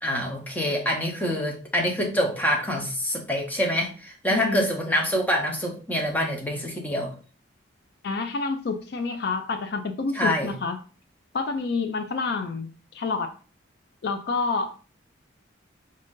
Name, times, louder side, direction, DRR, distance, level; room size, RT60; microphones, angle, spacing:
voice 1, 0.0-7.1 10.1-10.5, equal, 10° left, 1 dB, 0.8 m, -26 dB
voice 2, 4.3-4.6 8.0-10.8 11.3-13.3 14.0-14.7, left 4 dB, 55° left, 7 dB, 0.4 m, -28 dB
5.3 x 2.6 x 3.6 m, 0.39 s
head